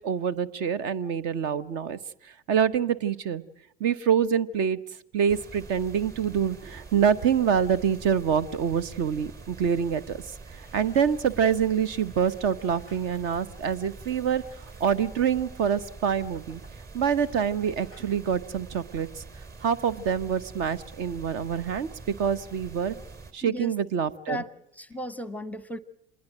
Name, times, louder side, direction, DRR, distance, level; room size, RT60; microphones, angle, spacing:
voice 1, 0.0-2.0 2.5-3.4 3.8-4.8 5.1-10.2 10.5-16.6 16.9-19.2 19.6-21.9 22.2-22.9 23.3-24.4, right 7 dB, 50° right, 16 dB, 1.0 m, -26 dB
sound 1, 5.3-23.3, right 3 dB, 30° right, 2.8 m, -45 dB
sound 2, 10.4-17.5 17.8-18.1, right 1 dB, 80° right, 4.1 m, -57 dB
voice 2, 23.4-23.7 24.3-24.5 24.8-25.8, left 1 dB, 5° left, 16 dB, 0.9 m, -35 dB
26.5 x 21.0 x 6.2 m, 0.80 s
figure-of-eight pair, 70°, 30 cm